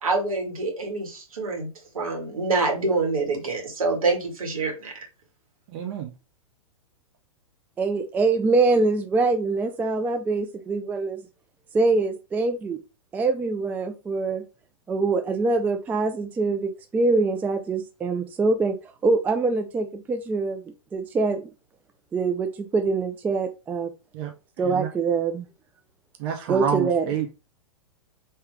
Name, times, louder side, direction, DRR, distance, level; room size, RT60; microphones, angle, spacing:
voice 1, 0.0-1.7 1.9-4.9, right 3 dB, 75° right, 1.7 m, -26 dB
voice 2, 5.7-6.1 24.1-24.3 24.7-24.9 26.2-27.3, right 8 dB, 45° right, 0.7 m, -28 dB
voice 3, 7.8-11.2 11.7-12.8 13.1-14.4 14.9-18.8 19.0-20.6 20.9-21.4 22.1-23.9 24.6-25.5 26.5-27.1, right 3 dB, 10° right, 0.3 m, -24 dB
3.4 x 2.8 x 3.3 m
figure-of-eight pair, 110°, 18 cm